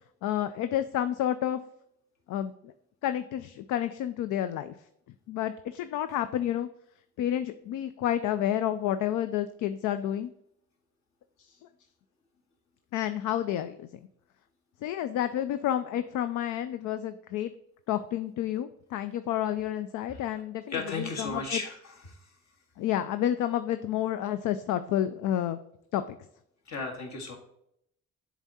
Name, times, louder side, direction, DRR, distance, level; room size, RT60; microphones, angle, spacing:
voice 1, 0.2-1.6 2.3-2.7 3.0-4.7 5.3-6.7 7.2-10.3 11.4-11.6 12.9-13.9 14.8-17.5 17.9-21.6 22.8-25.6 25.9-26.2, left 11 dB, 80° left, 11 dB, 0.4 m, -30 dB
voice 2, 20.7-22.2 26.7-27.4, left 3 dB, 65° left, 1 dB, 1.8 m, -35 dB
7.1 x 3.7 x 4.1 m, 0.75 s
cardioid pair, 90°, 30 cm